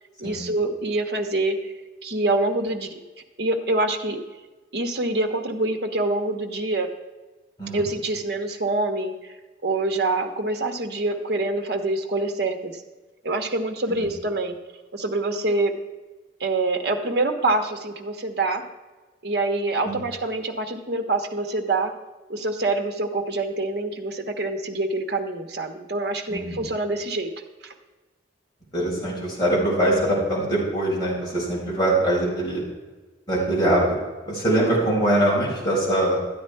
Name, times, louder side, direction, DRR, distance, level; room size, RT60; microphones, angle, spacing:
voice 1, 0.2-1.7 2.0-3.0 3.4-4.2 4.7-6.9 7.7-9.3 9.6-12.8 13.2-14.6 14.9-15.7 16.4-18.6 19.2-21.9 22.3-27.3 27.6-27.7, right 2 dB, 55° right, 5 dB, 1.2 m, -25 dB
voice 2, 26.3-26.6 28.7-32.6 33.3-33.8 34.3-36.2, right 1 dB, 20° left, -6 dB, 4.4 m, -23 dB
13.0 x 9.3 x 4.6 m, 1.2 s
head